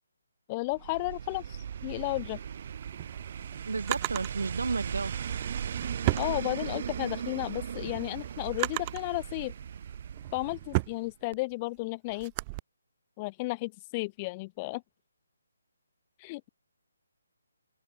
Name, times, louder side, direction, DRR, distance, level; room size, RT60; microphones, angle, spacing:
voice 1, 0.5-2.4 6.2-9.5 10.3-12.3 13.2-14.8 16.2-16.5, left 23 dB, 20° left, 1.6 m, -33 dB
sound 1, 0.7-11.1 11.3-11.4, right 8 dB, 40° right, 1.9 m, -38 dB
Drawer open or close, 2.8-4.3 5.4-7.0 7.4-9.1 9.8-12.6, right 24 dB, 20° right, 6.3 m, -35 dB
voice 2, 3.7-5.1, right 4 dB, 80° right, 6.2 m, -32 dB
open air
hypercardioid pair, 165°, 0 cm